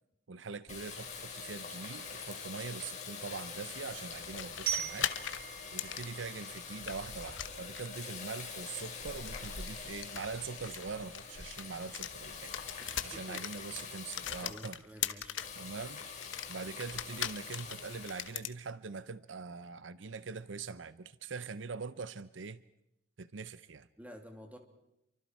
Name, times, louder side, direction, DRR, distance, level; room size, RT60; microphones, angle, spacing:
voice 1, 0.3-5.1 5.7-12.5 13.0-14.8 15.6-16.0 16.5-22.6 23.2-23.9, right 4 dB, 75° right, 0.7 m, -43 dB
Water tap faucet, 0.7-14.4 15.4-18.2, left 5 dB, 40° left, 5.2 m, -45 dB
sound 1, 4.2-7.0 7.3-8.1 9.1-12.1 12.4-15.6 16.0-18.6, left 10 dB, 75° left, 1.0 m, -40 dB
Glockenspiel, 4.7-7.5, right 10 dB, 50° right, 2.7 m, -41 dB
voice 2, 12.8-13.8 14.4-15.4 24.0-24.6, equal, 10° right, 2.9 m, -51 dB
28.5 x 24.5 x 4.7 m
head